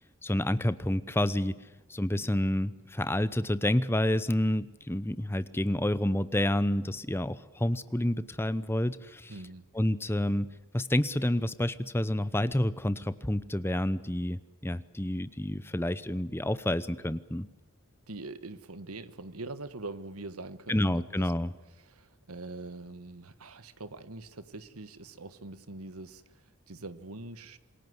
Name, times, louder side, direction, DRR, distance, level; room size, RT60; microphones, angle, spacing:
voice 1, 0.2-1.5 1.9-9.3 9.7-17.5 20.7-21.5, left 1 dB, 10° left, 15 dB, 0.8 m, -29 dB
voice 2, 9.3-9.6 18.1-21.3 21.8-27.6, right 2 dB, 90° right, 13 dB, 1.5 m, -43 dB
27.5 x 21.5 x 8.0 m, 1.1 s
head